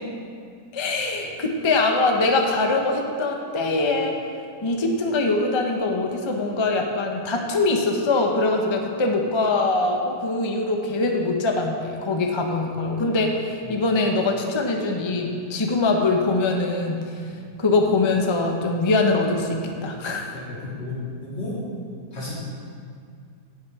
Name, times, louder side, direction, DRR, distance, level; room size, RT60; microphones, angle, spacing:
voice 1, 0.7-4.1 4.6-17.2 17.6-20.3, left 3 dB, 30° left, 2 dB, 0.6 m, -23 dB
voice 2, 20.3-21.6 22.1-22.3, left 2 dB, 80° left, -8 dB, 3.5 m, -33 dB
16.5 x 6.6 x 3.6 m, 2.3 s
omnidirectional pair, 1.8 m